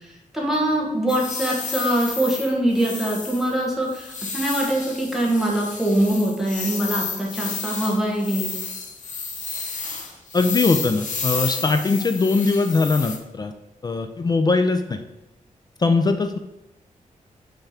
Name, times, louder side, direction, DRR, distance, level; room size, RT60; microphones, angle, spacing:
voice 1, 0.3-8.5, right 1 dB, 5° right, -3 dB, 1.1 m, -23 dB
sound 1, 1.1-13.2, left 4 dB, 65° left, 0.9 m, -32 dB
voice 2, 10.3-13.5 13.8-15.0 15.8-16.4, left 3 dB, 30° left, 7 dB, 0.3 m, -21 dB
5.6 x 3.6 x 5.7 m, 0.95 s
wide cardioid pair, 180°, 14 cm